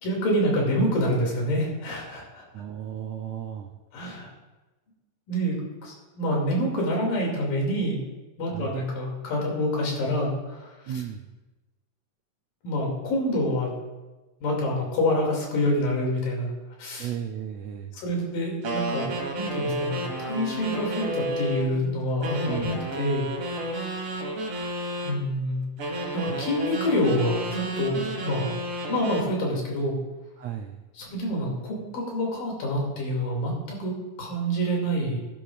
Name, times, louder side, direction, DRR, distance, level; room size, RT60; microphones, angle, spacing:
voice 1, 0.0-2.5 3.9-4.3 5.3-8.0 8.4-10.7 12.6-13.7 14.4-16.5 16.8-17.1 17.9-23.3 25.0-28.5 28.9-30.0 31.0-35.2, equal, 80° left, -2 dB, 4.4 m, -27 dB
voice 2, 2.5-3.7 8.5-8.8 10.9-11.2 17.0-18.0 22.4-22.9 30.4-30.8, right 9 dB, 85° right, 4 dB, 1.5 m, -35 dB
sound 1, 18.6-21.7 22.2-25.2 25.8-29.3, right 1 dB, 55° right, 2.5 m, -31 dB
17.5 x 10.5 x 2.5 m, 1.2 s
omnidirectional pair, 3.9 m